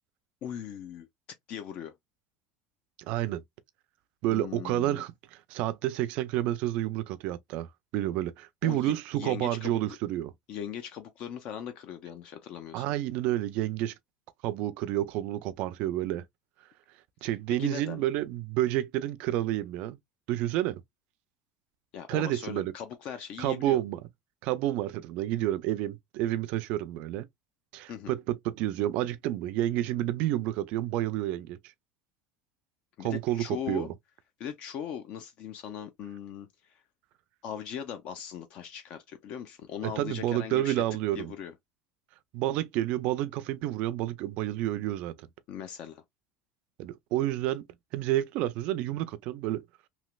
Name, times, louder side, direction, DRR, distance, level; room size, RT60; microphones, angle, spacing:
voice 1, 0.4-1.1 1.5-1.9 4.3-5.0 8.6-9.8 10.5-12.9 17.6-18.0 21.9-23.8 27.9-28.2 33.0-33.9 34.4-36.8 37.4-40.8 41.1-41.5 45.5-46.0, left 9 dB, 40° left, 0.4 m, -39 dB
voice 2, 3.1-3.4 4.2-7.7 7.9-10.3 12.7-13.9 14.4-16.2 17.2-20.0 20.3-20.8 22.1-22.7 23.4-24.0 24.4-27.3 27.7-31.6 33.0-33.9 39.8-41.3 42.3-45.3 46.8-47.6 47.9-49.6, right 14 dB, 50° right, 0.3 m, -30 dB
3.1 x 2.8 x 2.2 m
cardioid pair, 170°, 3 cm